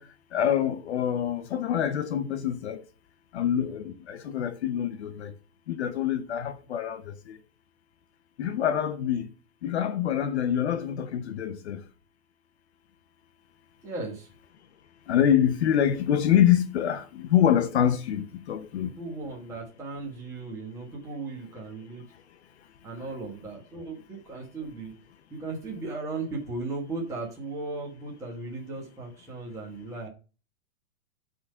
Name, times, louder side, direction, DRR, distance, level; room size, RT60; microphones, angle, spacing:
voice 1, 0.0-2.8 3.3-5.3 5.7-7.4 8.4-9.3 9.6-11.8 15.1-18.9, left 10 dB, 50° left, 0.7 m, -26 dB
voice 2, 13.8-14.3 19.0-22.0 22.8-24.9 25.3-30.1, right 3 dB, 5° right, 1.2 m, -36 dB
8.4 x 3.9 x 5.5 m
supercardioid pair, 175°, 44 cm